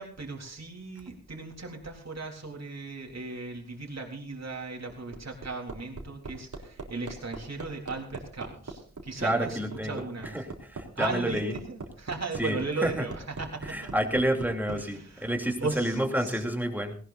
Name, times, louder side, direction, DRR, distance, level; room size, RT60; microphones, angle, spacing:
voice 1, 0.0-10.4 10.9-13.9 14.7-16.4, right 3 dB, 60° right, 0 dB, 3.9 m, -37 dB
Hammer, 4.9-14.8 16.1-16.2, right 3 dB, 85° right, 3.6 m, -40 dB
voice 2, 9.2-10.0 10.3-10.5 10.7-11.5 12.4-13.0 13.7-16.9, right 1 dB, 5° right, 3 dB, 3.1 m, -29 dB
19.5 x 19.0 x 2.7 m, 0.42 s
wide cardioid pair, 100°, 30 cm